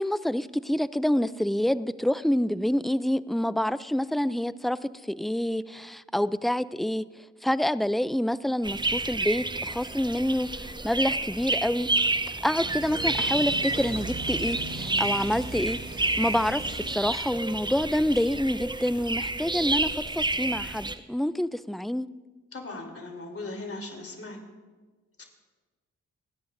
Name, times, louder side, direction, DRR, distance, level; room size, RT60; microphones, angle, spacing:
voice 1, 0.0-7.1 7.4-11.9 12.4-15.8 16.2-22.1, left 1 dB, ahead, 16 dB, 0.4 m, -27 dB
sound 1, 8.6-21.0, right 2 dB, 15° right, 0.8 m, -30 dB
sound 2, 12.6-17.5, right 2 dB, 50° right, 5.2 m, -39 dB
voice 2, 22.5-24.4 25.2-25.3, left 2 dB, 50° left, 2 dB, 3.3 m, -38 dB
30.0 x 10.5 x 2.6 m, 1.3 s
cardioid pair, 55°, 29 cm